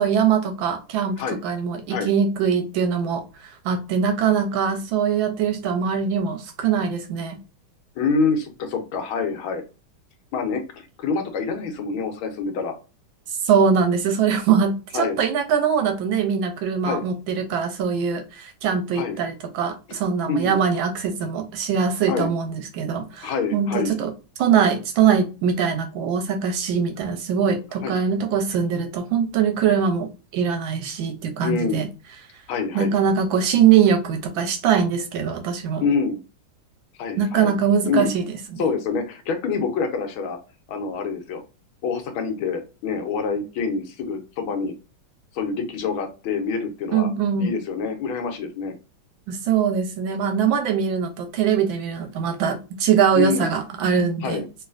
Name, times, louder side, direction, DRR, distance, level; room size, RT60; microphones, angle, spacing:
voice 1, 0.0-7.4 13.3-24.1 24.4-31.9 32.7-35.8 37.2-38.3 38.5-38.6 46.9-47.5 49.3-54.4, right 7 dB, 75° right, 1.3 m, -22 dB
voice 2, 8.0-9.6 10.3-12.7 14.9-15.2 16.8-17.0 18.9-19.2 20.3-20.6 22.1-22.3 23.2-24.0 27.8-27.9 31.4-31.8 32.5-32.9 35.8-36.2 37.0-37.5 37.8-38.1 38.6-40.4 40.7-41.4 41.8-44.7 45.3-47.1 47.4-48.7 53.1-53.5 54.2-54.5, left 5 dB, 75° left, 1.5 m, -26 dB
3.1 x 3.1 x 2.4 m
omnidirectional pair, 2.3 m